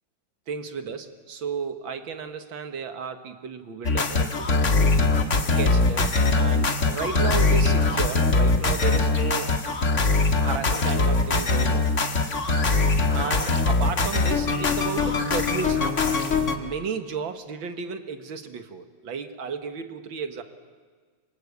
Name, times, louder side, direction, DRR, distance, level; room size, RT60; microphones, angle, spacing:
voice 1, 0.5-5.1 5.6-6.1 6.3-9.5 10.4-11.9 13.1-16.0 16.6-20.4, right 6 dB, 75° right, 8 dB, 2.4 m, -33 dB
sound 1, 3.8-16.6, left 3 dB, 40° left, 1.9 m, -22 dB
26.5 x 24.5 x 8.3 m, 1.5 s
omnidirectional pair, 2.2 m